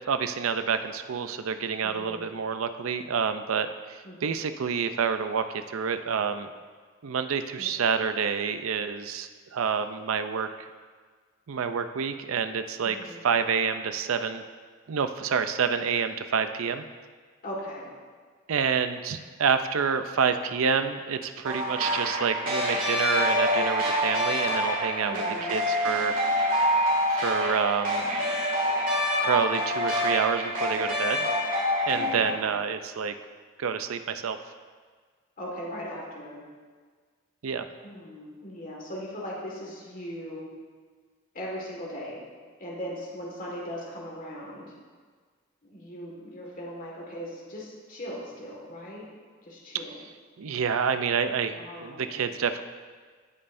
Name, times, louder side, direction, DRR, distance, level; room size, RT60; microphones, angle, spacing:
voice 1, 0.1-6.5 7.0-10.5 11.5-14.4 14.9-16.8 18.5-25.2 25.5-26.2 27.1-28.0 29.2-31.3 31.9-33.2 33.6-34.4 37.4-37.6 50.4-52.6, right 6 dB, 90° right, 9 dB, 0.5 m, -28 dB
voice 2, 1.8-2.3 4.0-4.5 7.6-7.8 12.8-13.2 17.4-17.9 25.0-25.5 31.9-32.5 35.4-36.5 37.8-40.5 41.3-42.2 42.6-44.7 45.6-49.1 49.5-49.9 51.6-52.2, equal, 45° left, -4 dB, 1.8 m, -39 dB
sound 1, 21.4-32.2, equal, 45° right, 2.2 m, -26 dB
16.0 x 5.5 x 2.6 m, 1.5 s
head